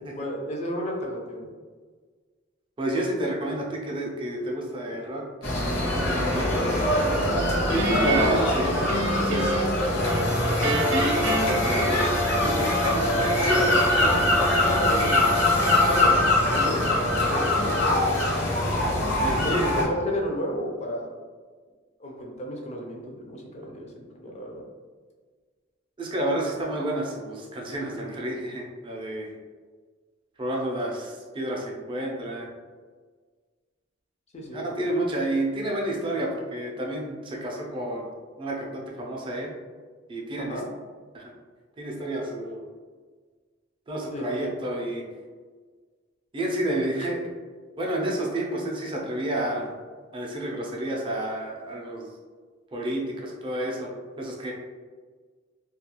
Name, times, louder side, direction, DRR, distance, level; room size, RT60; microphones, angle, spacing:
voice 1, 0.2-1.5 11.7-11.9 12.3-12.6 14.6-15.2 15.9-16.2 16.4-18.6 19.4-21.1 22.0-24.6 34.3-34.6 40.4-40.7 44.1-44.4, equal, 35° left, 0 dB, 0.4 m, -32 dB
voice 2, 2.8-5.3 5.9-6.9 7.9-9.5 11.6-12.1 12.4-14.2 18.9-19.6 26.0-29.3 30.4-32.5 34.5-38.1 38.4-39.5 40.1-40.6 41.1-41.2 41.8-42.6 43.9-45.0 46.3-47.3 47.8-49.7 50.1-52.1 52.7-53.9 54.2-54.5, right 1 dB, 25° right, -2 dB, 0.4 m, -30 dB
sound 1, 5.4-19.8, left 1 dB, 60° left, 0.7 m, -23 dB
Guitar, 7.7-9.8 10.2-12.5, right 1 dB, 70° right, 0.6 m, -27 dB
2.3 x 2.3 x 2.9 m, 1.5 s
head